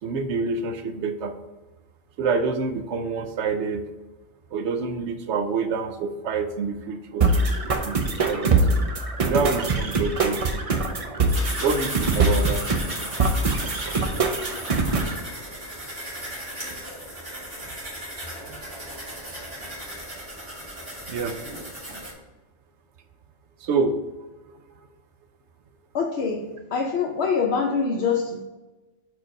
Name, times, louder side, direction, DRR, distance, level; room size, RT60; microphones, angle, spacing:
voice 1, 0.0-1.4 2.2-3.8 4.5-7.3 7.8-8.5 9.2-10.4 11.6-12.8 13.5-13.9 21.1-21.4 23.6-24.0 24.5-24.6, right 4 dB, 85° right, 8 dB, 0.9 m, -27 dB
sound 1, 7.2-15.2, right 3 dB, 40° right, 0.5 m, -23 dB
sound 2, 11.3-22.1, right 1 dB, 60° right, 2.4 m, -36 dB
voice 2, 25.9-28.4, left 5 dB, 70° left, 0 dB, 0.9 m, -25 dB
4.7 x 4.6 x 5.1 m, 1.1 s
omnidirectional pair, 1.2 m